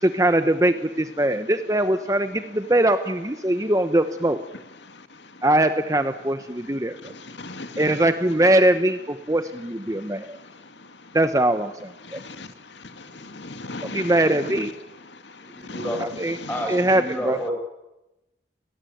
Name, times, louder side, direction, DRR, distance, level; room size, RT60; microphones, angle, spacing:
voice 1, 0.0-4.4 5.4-7.1 7.8-10.4 11.1-12.2 13.8-14.7 16.0-16.4 16.7-17.4, right 1 dB, 20° right, 9 dB, 1.0 m, -21 dB
voice 2, 7.0-8.0 12.1-12.5 13.0-14.1 15.6-16.0 16.4-16.7, left 2 dB, 90° left, 8 dB, 2.2 m, -37 dB
voice 3, 15.5-16.0 16.5-17.5, equal, 10° left, 2 dB, 7.4 m, -30 dB
30.0 x 19.5 x 9.3 m, 0.96 s
head